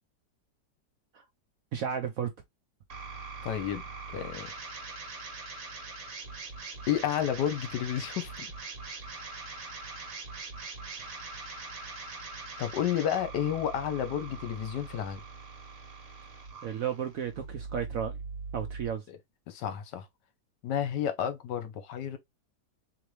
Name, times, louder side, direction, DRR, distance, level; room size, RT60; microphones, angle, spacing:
voice 1, 1.7-2.3 16.6-18.2 18.5-19.0, right 8 dB, 70° right, 0.8 m, -33 dB
sound 1, 2.9-18.9, right 4 dB, 50° right, 1.3 m, -42 dB
voice 2, 3.4-3.8 4.1-4.5 6.9-8.5 12.6-15.2 19.5-20.1 20.6-22.2, left 10 dB, 75° left, 1.3 m, -31 dB
4.0 x 3.1 x 3.1 m
omnidirectional pair, 1.9 m